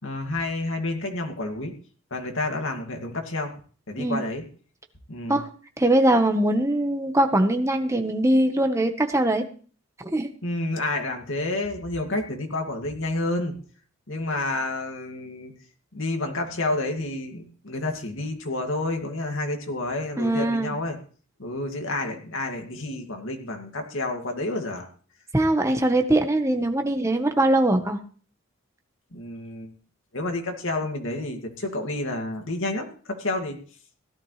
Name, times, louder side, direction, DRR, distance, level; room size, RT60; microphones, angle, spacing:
voice 1, 0.0-1.7 2.1-3.6 3.9-4.4 5.1-5.4 10.4-13.5 14.1-15.5 15.9-21.0 21.4-24.9 29.1-29.7 30.1-32.9 33.2-33.6, left 2 dB, 65° left, 3 dB, 2.3 m, -29 dB
voice 2, 5.8-9.4 10.1-10.3 20.2-20.7 25.3-28.0, right 1 dB, 15° right, 5 dB, 1.2 m, -21 dB
17.0 x 12.0 x 3.3 m, 0.42 s
head